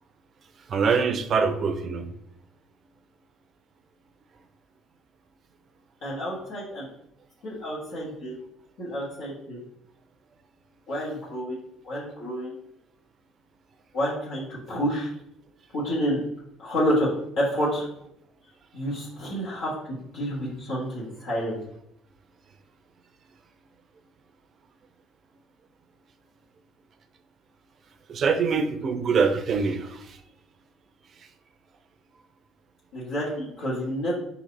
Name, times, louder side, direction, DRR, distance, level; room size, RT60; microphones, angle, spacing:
voice 1, 0.7-2.1 28.1-30.0, right 5 dB, 45° right, 9 dB, 0.6 m, -24 dB
voice 2, 6.0-6.9 7.4-8.3 8.8-9.6 10.9-11.6 11.8-12.5 13.9-15.1 15.7-16.2 16.6-17.1 17.4-17.9 18.7-21.6 32.9-34.1, equal, 65° left, -8 dB, 1.4 m, -29 dB
3.9 x 2.8 x 4.1 m, 0.77 s
hypercardioid pair, 60°, 0 cm